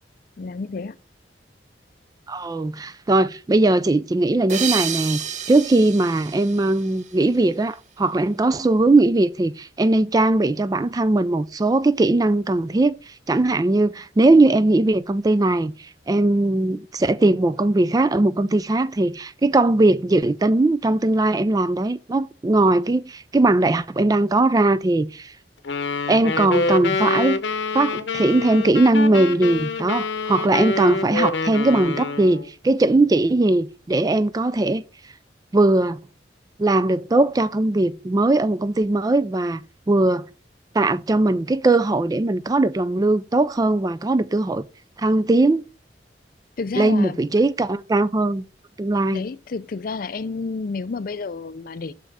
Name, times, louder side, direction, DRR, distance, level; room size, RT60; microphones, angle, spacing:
voice 1, 0.4-1.0 46.6-47.3 49.1-51.9, left 4 dB, 50° left, 0.4 m, -30 dB
voice 2, 2.3-5.2 5.5-13.0 13.3-25.3 26.1-27.4 27.7-34.8 35.5-36.0 36.6-39.6 39.9-40.3 40.7-44.6 45.0-45.6 46.8-48.4 48.8-49.2, right 2 dB, 20° right, 0.3 m, -19 dB
sound 1, 4.5-7.6, right 8 dB, 40° right, 0.7 m, -30 dB
sound 2, 25.6-32.5, left 3 dB, 80° left, 0.8 m, -26 dB
6.2 x 5.7 x 4.8 m
head